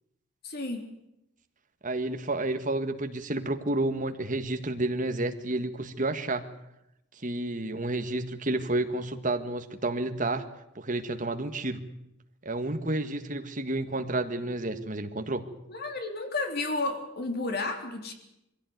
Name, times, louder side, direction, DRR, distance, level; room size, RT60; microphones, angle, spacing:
voice 1, 0.4-0.8 15.7-18.1, left 2 dB, 50° left, 5 dB, 3.3 m, -32 dB
voice 2, 1.8-6.4 7.2-10.5 10.8-11.8 12.4-15.4, right 2 dB, 40° right, 7 dB, 1.8 m, -30 dB
23.0 x 16.5 x 9.4 m, 0.85 s
head